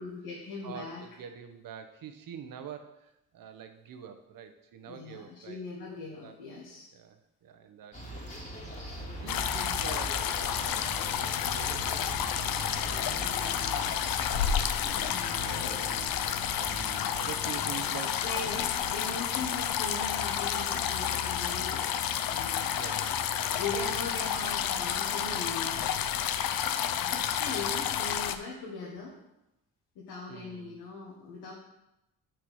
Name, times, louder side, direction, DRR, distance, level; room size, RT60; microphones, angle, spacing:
voice 1, 0.0-1.0 4.9-6.9 13.2-14.0 14.8-15.8 18.2-21.9 22.3-22.9 23.6-25.9 27.0-29.1 29.9-31.5, left 3 dB, 85° left, -4 dB, 1.7 m, -40 dB
voice 2, 0.6-5.6 5.9-6.3 6.9-13.9 14.3-15.0 15.4-16.2 16.5-18.2 22.7-23.2 23.7-23.9 30.3-30.8, right 8 dB, 65° right, 7 dB, 1.0 m, -46 dB
sound 1, 7.9-19.0, right 1 dB, 20° left, 2.2 m, -41 dB
sound 2, 9.3-28.3, left 9 dB, 65° left, 0.7 m, -30 dB
6.3 x 4.9 x 6.4 m, 0.90 s
cardioid pair, 85°, 37 cm